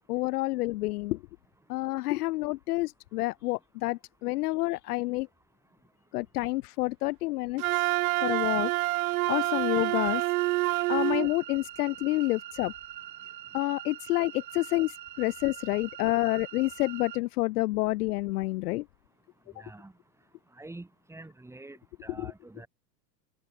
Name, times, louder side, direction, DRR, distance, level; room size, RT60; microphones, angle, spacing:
voice 1, 0.1-1.2 1.7-5.3 6.1-7.6 8.2-8.7 9.3-10.2 10.9-12.7 13.5-18.8, left 20 dB, 65° left, 0.5 m, -28 dB
Wind instrument woodwind instrument, 7.6-11.3, right 20 dB, 60° right, 0.8 m, -27 dB
sound 1, 9.8-17.2, right 13 dB, 80° right, 1.5 m, -44 dB
voice 2, 19.5-19.9 20.5-22.7, right 2 dB, 5° right, 2.9 m, -46 dB
hypercardioid pair, 120°, 50 cm